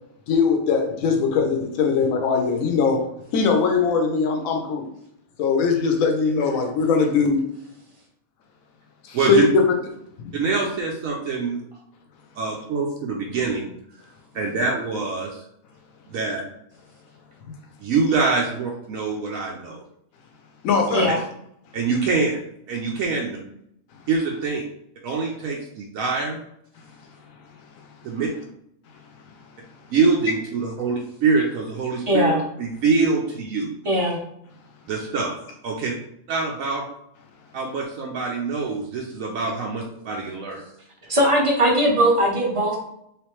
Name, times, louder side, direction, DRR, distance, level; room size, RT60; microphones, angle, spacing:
voice 1, 0.3-3.1 3.3-4.9 5.4-7.4 9.0-9.4 10.2-10.4 20.6-21.1, left 5 dB, 75° left, 3 dB, 1.1 m, -21 dB
voice 2, 9.1-9.5 10.3-11.6 12.4-13.7 14.3-15.4 16.1-16.4 17.8-19.8 21.7-22.4 22.7-23.4 24.1-24.6 25.0-26.4 28.0-28.3 29.9-32.3 32.6-33.7 34.9-35.4 35.6-35.9 36.3-36.9 37.5-40.6, right 4 dB, 75° right, -1 dB, 1.0 m, -24 dB
voice 3, 32.1-32.4 33.8-34.2 41.1-42.8, right 1 dB, 35° right, -1 dB, 0.5 m, -19 dB
3.3 x 3.1 x 3.0 m, 0.75 s
omnidirectional pair, 1.5 m